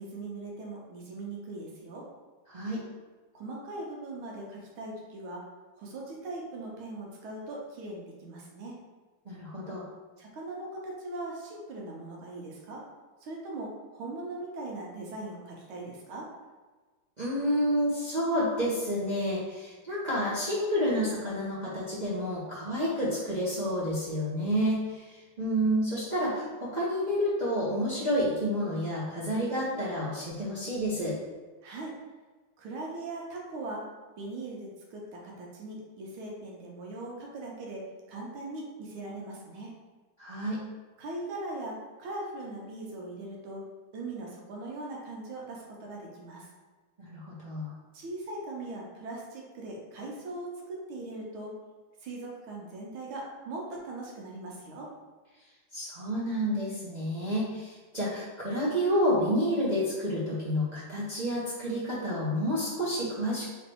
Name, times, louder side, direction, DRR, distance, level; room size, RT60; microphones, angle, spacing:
voice 1, 0.0-2.0 3.3-5.4 5.8-8.8 10.2-12.8 13.2-16.3 31.6-31.9 32.6-33.8 34.2-37.8 38.1-39.7 41.0-43.6 43.9-46.5 47.9-51.5 52.0-54.9, right 2 dB, 80° right, -2 dB, 1.7 m, -40 dB
voice 2, 2.5-2.8 9.3-9.8 17.2-31.2 40.2-40.7 47.0-47.7 55.7-63.5, equal, 50° right, -9 dB, 0.5 m, -29 dB
3.7 x 3.1 x 4.5 m, 1.3 s
omnidirectional pair, 2.3 m